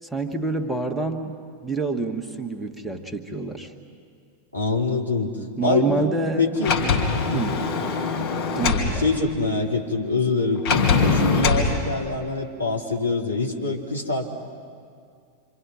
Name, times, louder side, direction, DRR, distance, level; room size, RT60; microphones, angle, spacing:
voice 1, 0.0-3.7 5.6-7.0 7.3-7.6 8.5-9.0, right 3 dB, 5° right, 4 dB, 1.5 m, -27 dB
voice 2, 4.5-6.0 6.4-6.8 7.3-7.6 8.9-14.3, left 3 dB, 85° left, 0 dB, 2.5 m, -25 dB
Sliding door, 6.6-8.9 10.6-11.7, left 4 dB, 45° left, 3.5 m, -22 dB
27.0 x 26.0 x 5.9 m, 2.3 s
figure-of-eight pair, 90°, 0 cm